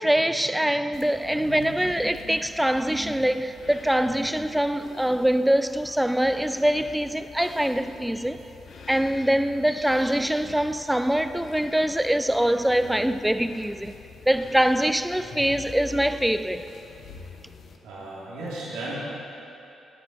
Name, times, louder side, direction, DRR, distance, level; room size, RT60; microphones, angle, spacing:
voice 1, 0.0-8.4 8.9-13.9 14.3-16.6, right 1 dB, 5° right, 0.7 m, -24 dB
sound 1, 0.9-17.8, left 4 dB, 65° left, 1.2 m, -45 dB
voice 2, 1.3-2.3 2.9-3.2 4.0-4.3 17.8-18.9, right 1 dB, 80° right, 3.2 m, -37 dB
17.0 x 8.9 x 5.4 m
hypercardioid pair, 45°, 0 cm